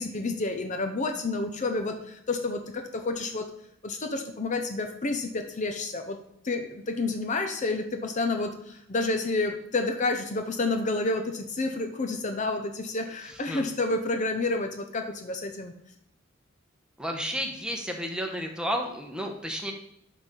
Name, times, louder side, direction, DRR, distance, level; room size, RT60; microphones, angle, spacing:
voice 1, 0.0-3.5 3.8-6.2 6.4-15.7, left 3 dB, 40° left, 5 dB, 0.6 m, -29 dB
voice 2, 17.0-19.7, equal, 5° right, 2 dB, 1.0 m, -32 dB
11.5 x 4.0 x 3.8 m, 0.74 s
head